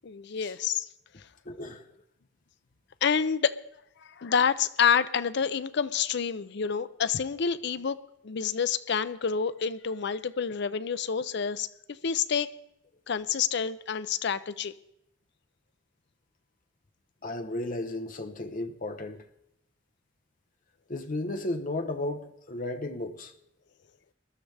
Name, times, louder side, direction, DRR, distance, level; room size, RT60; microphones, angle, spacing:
voice 1, 0.0-0.9 3.0-3.6 4.2-8.0 8.2-11.7 12.0-12.5 13.1-14.7, left 7 dB, 60° left, 0.5 m, -28 dB
voice 2, 1.4-1.8 17.2-19.2 20.9-23.3, left 2 dB, 45° left, 0.9 m, -34 dB
21.0 x 12.5 x 3.4 m
head